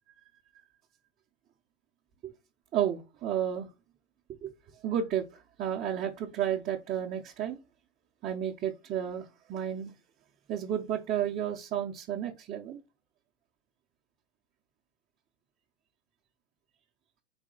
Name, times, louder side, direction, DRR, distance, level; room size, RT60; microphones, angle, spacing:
voice 1, 2.7-3.7 4.4-4.5 4.8-7.6 8.2-9.9 10.5-12.8, right 10 dB, 25° right, 0.6 m, -32 dB
4.1 x 2.7 x 3.7 m
hypercardioid pair, 120°, 35 cm